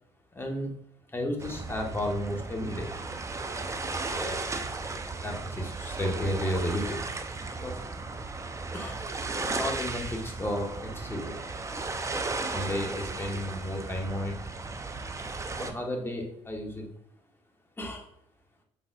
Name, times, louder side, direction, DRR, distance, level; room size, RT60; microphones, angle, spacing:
voice 1, 0.3-0.7 1.1-2.9 3.8-4.5 5.2-7.0 7.6-7.8 8.7-9.0 9.4-11.4 12.4-14.3 15.6-16.9 17.8-18.0, left 1 dB, 15° left, 1 dB, 1.4 m, -33 dB
sound 1, 1.4-15.7, right 3 dB, 20° right, 0.6 m, -35 dB
5.4 x 4.0 x 2.3 m, 0.75 s
hypercardioid pair, 55°, 15 cm